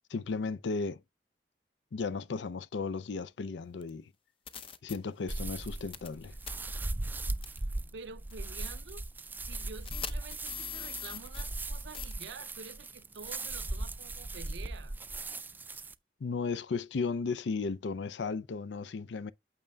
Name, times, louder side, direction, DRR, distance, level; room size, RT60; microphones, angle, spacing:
voice 1, 0.1-1.0 1.9-4.1 4.8-6.3 16.2-19.3, left 4 dB, 80° left, 0.5 m, -35 dB
sound 1, 3.8-3.9 4.5-5.0 5.9-6.2 6.4-6.5 7.4-7.6 8.3-8.4 9.9-11.7 11.9-12.1, left 7 dB, 30° left, 0.6 m, -40 dB
sound 2, 5.3-15.9, right 2 dB, 10° right, 0.3 m, -38 dB
voice 2, 7.9-9.0 9.4-15.0, right 4 dB, 90° right, 0.5 m, -48 dB
8.8 x 6.5 x 2.3 m
head